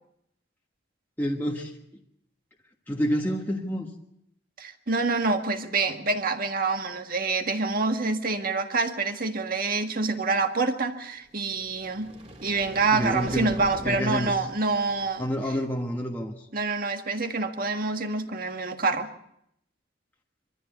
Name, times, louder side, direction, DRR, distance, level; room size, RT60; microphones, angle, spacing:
voice 1, 1.2-1.7 2.9-3.9 12.9-13.6 13.8-14.4 15.2-16.3, equal, 10° left, -1 dB, 1.4 m, -28 dB
voice 2, 4.6-12.1 12.4-15.3 16.5-19.1, right 3 dB, 45° right, 5 dB, 1.8 m, -27 dB
sound 1, 11.4-15.7, right 1 dB, 30° right, 3.5 m, -43 dB
24.5 x 14.0 x 8.2 m, 0.77 s
head